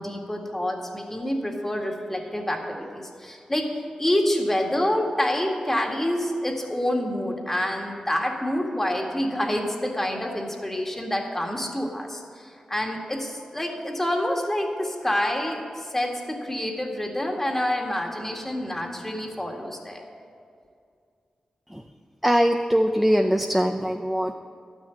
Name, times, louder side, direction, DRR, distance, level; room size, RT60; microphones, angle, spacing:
voice 1, 0.0-20.0, left 1 dB, 15° left, 1 dB, 2.0 m, -27 dB
voice 2, 22.2-24.3, equal, 5° right, 4 dB, 0.6 m, -21 dB
12.5 x 6.4 x 9.4 m, 2.3 s
cardioid pair, 75°, 2 cm